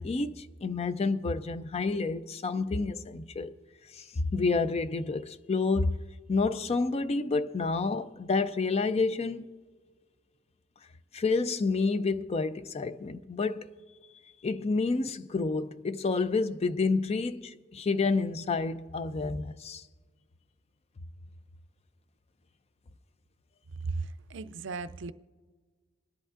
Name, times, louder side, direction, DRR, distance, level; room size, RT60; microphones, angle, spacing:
voice 1, 0.0-3.5 3.9-4.0 4.3-6.0 6.3-9.5 11.1-13.7 14.4-19.8, left 3 dB, 30° left, 0.4 m, -29 dB
voice 2, 23.8-25.1, right 4 dB, 65° right, 0.5 m, -36 dB
27.5 x 10.5 x 2.5 m
head